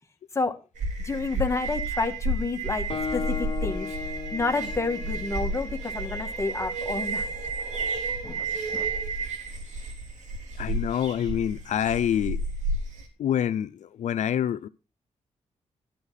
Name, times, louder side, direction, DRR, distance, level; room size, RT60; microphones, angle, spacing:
sound 1, 0.8-13.0, right 2 dB, 90° right, 3.7 m, -31 dB
voice 1, 1.0-3.9 4.3-7.3 8.2-8.5 8.7-8.9, left 3 dB, 25° left, 1.8 m, -30 dB
Guitar, 2.9-6.6, left 6 dB, 45° left, 2.5 m, -36 dB
voice 2, 10.6-12.4 13.2-14.7, left 10 dB, 80° left, 0.6 m, -26 dB
12.5 x 11.5 x 4.1 m
cardioid pair, 105°, 12 cm